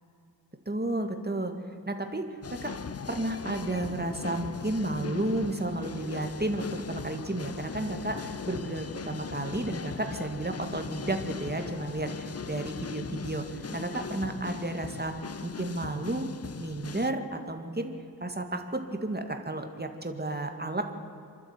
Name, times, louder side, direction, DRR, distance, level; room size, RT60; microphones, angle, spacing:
voice 1, 0.7-2.8 3.1-16.3 16.6-17.9 18.2-20.9, right 2 dB, 25° right, 5 dB, 2.1 m, -32 dB
sound 1, 2.4-17.1, left 6 dB, 40° left, 0.5 m, -39 dB
27.5 x 12.0 x 9.0 m, 2.8 s
wide cardioid pair, 70°, 37 cm